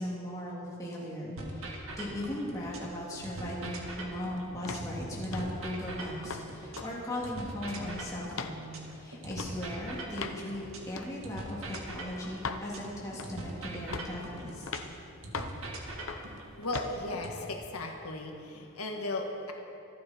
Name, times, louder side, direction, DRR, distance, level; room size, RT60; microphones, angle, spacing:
voice 1, 0.0-8.7 8.9-14.7, left 1 dB, 15° left, -5 dB, 2.8 m, -38 dB
sound 1, 1.4-2.9 3.2-6.9 7.2-10.9 11.2-14.9 15.2-17.4, right 2 dB, 75° right, 2.0 m, -42 dB
sound 2, 4.6-4.9 5.3-5.6 6.0-6.4 6.8-6.9 7.2-7.9 8.3-8.6 9.3-9.5 10.2-10.4 11.0-11.1 11.7-11.9 12.4-12.7 13.2-13.5 13.9-14.2 14.7-14.9 15.3-15.6 16.1-16.3 16.7-16.9, left 4 dB, 70° left, 0.8 m, -39 dB
voice 2, 16.6-19.5, left 2 dB, 90° left, 2 dB, 1.6 m, -36 dB
26.0 x 9.8 x 4.4 m, 2.9 s
head